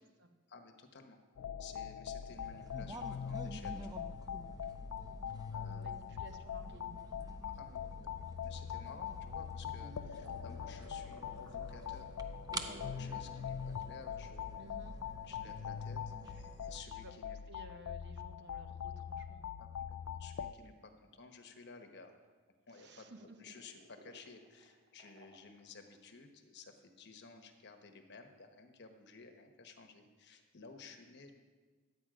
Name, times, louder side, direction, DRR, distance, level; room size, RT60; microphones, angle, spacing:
voice 1, 0.5-1.2 1.6-4.1 5.5-5.9 7.4-12.1 12.5-14.6 15.3-17.4 19.6-22.1 22.7-31.3, left 4 dB, 50° left, 6 dB, 1.1 m, -55 dB
sound 1, 1.4-20.5, left 8 dB, 65° left, 0.4 m, -43 dB
sound 2, 2.3-16.8, right 1 dB, 15° right, 0.5 m, -50 dB
voice 2, 5.6-7.1 14.6-15.0 16.3-16.4 16.9-17.1 17.5-19.4 22.7-23.5, right 1 dB, 50° right, 6 dB, 0.8 m, -55 dB
sound 3, 10.2-13.1 13.6-13.7 14.0-14.1 14.9-17.2 17.7-18.1 18.5-18.7 19.2-20.2 20.5-22.3 22.7-26.2, right 1 dB, 65° right, 1.6 m, -61 dB
12.0 x 8.4 x 4.9 m, 1.4 s
head